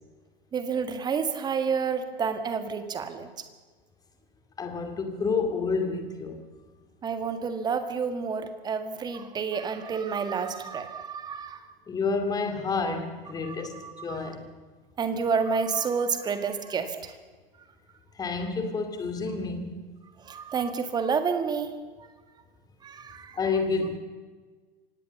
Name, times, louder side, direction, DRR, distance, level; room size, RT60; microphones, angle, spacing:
voice 1, 0.5-3.4 7.0-11.7 13.4-14.3 15.0-17.2 20.2-22.1 22.8-23.4, right 5 dB, 15° right, 9 dB, 1.7 m, -30 dB
voice 2, 4.6-6.4 11.9-14.5 18.2-19.8 23.3-24.0, left 4 dB, 10° left, 6 dB, 2.5 m, -29 dB
25.0 x 18.5 x 6.9 m, 1.4 s
figure-of-eight pair, 110°, 30 cm